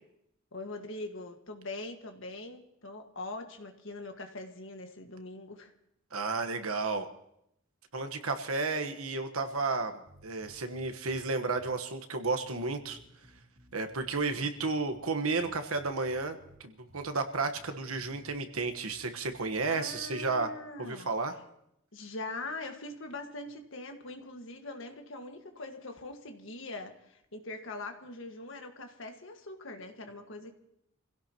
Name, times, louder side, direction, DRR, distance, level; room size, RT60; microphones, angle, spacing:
voice 1, 0.5-5.7 19.6-21.1 21.9-30.5, left 2 dB, 65° left, 5 dB, 1.7 m, -42 dB
voice 2, 6.1-7.1 7.9-9.9 10.2-13.0 13.7-20.5 20.8-21.3, right 3 dB, 90° right, 7 dB, 1.3 m, -32 dB
sound 1, 10.0-11.2 11.5-11.7 12.2-15.1 15.4-16.6 16.9-17.1 17.5-20.4, equal, 65° right, 2.6 m, -57 dB
27.5 x 16.5 x 3.0 m, 0.79 s
head